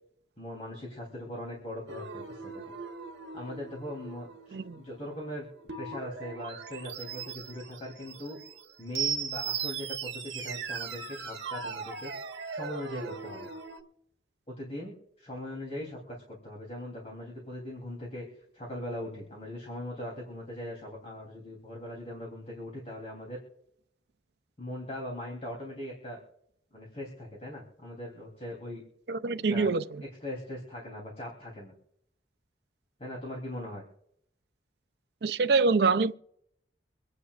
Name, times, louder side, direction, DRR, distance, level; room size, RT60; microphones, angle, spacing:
voice 1, 0.4-2.7 3.3-5.5 5.8-8.4 8.8-12.1 12.5-13.5 14.5-18.3 18.5-23.4 24.6-26.2 26.7-28.8 29.5-29.7 30.0-31.7 33.0-33.8, left 1 dB, 35° left, 3.4 m, -40 dB
sound 1, 1.9-13.8, right 6 dB, 80° right, 1.3 m, -38 dB
voice 2, 29.1-29.8 35.2-36.2, right 4 dB, 60° right, 0.5 m, -25 dB
26.0 x 9.7 x 2.5 m
head